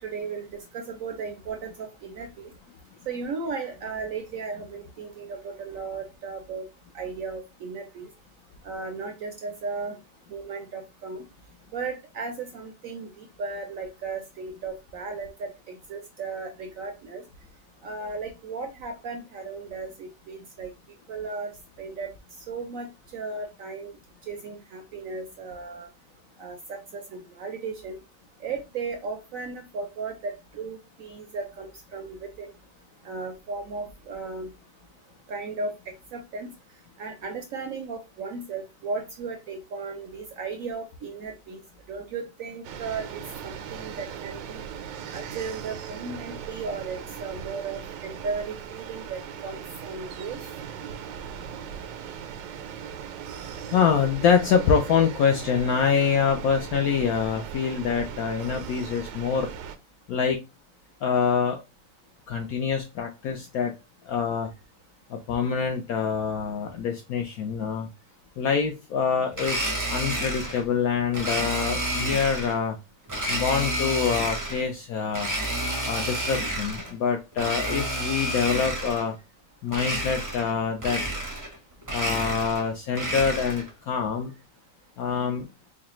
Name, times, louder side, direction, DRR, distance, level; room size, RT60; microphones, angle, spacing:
voice 1, 0.0-2.5 3.1-6.7 6.9-8.1 8.6-10.0 10.3-11.3 11.7-17.2 17.8-20.7 21.1-21.5 21.8-22.1 22.5-23.9 24.3-25.9 26.4-28.0 28.4-32.5 33.0-34.5 35.3-36.5 37.0-41.6 41.9-44.6 45.1-50.4, right 4 dB, 70° right, 0.8 m, -35 dB
sound 1, 42.6-59.8, right 8 dB, 90° right, 1.3 m, -39 dB
voice 2, 53.7-59.5 60.1-60.4 61.0-61.6 62.3-63.7 64.1-64.5 65.1-67.9 68.4-72.8 73.3-75.3 75.9-79.1 79.6-81.0 81.9-84.3 85.0-85.5, left 6 dB, 70° left, 0.9 m, -25 dB
Domestic sounds home sounds, 69.3-70.6 71.1-72.6 73.1-74.7 75.1-76.9 77.3-79.1 79.7-80.5 80.8-81.6 81.8-83.7, right 1 dB, 25° right, 0.4 m, -30 dB
4.7 x 2.2 x 3.0 m
omnidirectional pair, 1.9 m